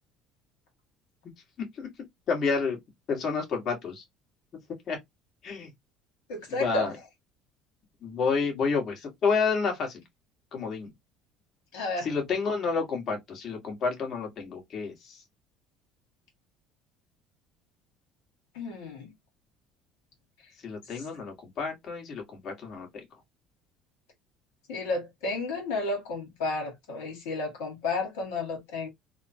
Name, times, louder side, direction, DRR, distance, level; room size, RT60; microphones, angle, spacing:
voice 1, 2.3-2.8 3.1-4.0 4.9-5.0 5.4-5.7 6.5-6.9 8.0-10.0 10.5-10.9 12.0-14.9 20.6-22.9, left 5 dB, 50° left, 1.4 m, -29 dB
voice 2, 6.3-7.0 11.7-12.1 18.5-19.1 20.9-21.0 24.7-28.9, left 3 dB, 85° left, 1.4 m, -32 dB
3.5 x 2.2 x 2.7 m
supercardioid pair, 95°, 0 cm